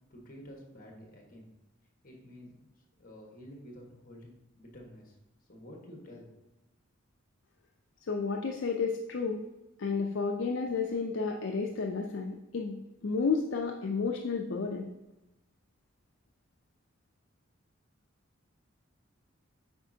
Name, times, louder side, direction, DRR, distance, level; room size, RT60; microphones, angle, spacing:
voice 1, 0.1-1.5 2.0-2.5 3.0-5.1 5.5-6.3, equal, 45° left, 0 dB, 1.4 m, -50 dB
voice 2, 8.1-9.5 9.8-12.8 13.0-14.9, left 4 dB, 65° left, 2 dB, 0.5 m, -31 dB
8.0 x 5.0 x 2.7 m, 0.98 s
head